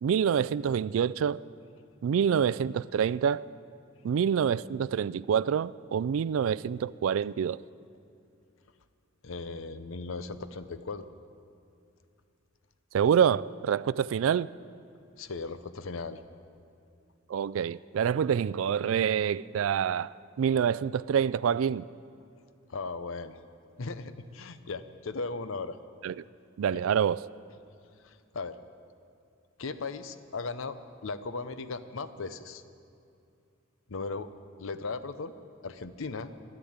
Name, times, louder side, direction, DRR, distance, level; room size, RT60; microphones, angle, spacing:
voice 1, 0.0-1.4 2.0-3.5 4.0-7.6 12.9-14.5 17.3-21.9 26.0-26.2 26.6-27.3, right 8 dB, 65° right, 0.3 m, -26 dB
voice 2, 9.2-11.1 15.2-16.2 22.7-23.4 23.8-25.8 26.7-26.8 28.0-28.6 29.6-32.6 33.9-34.3 34.6-35.3 35.6-36.3, left 3 dB, 65° left, 0.7 m, -37 dB
13.5 x 11.0 x 8.8 m
head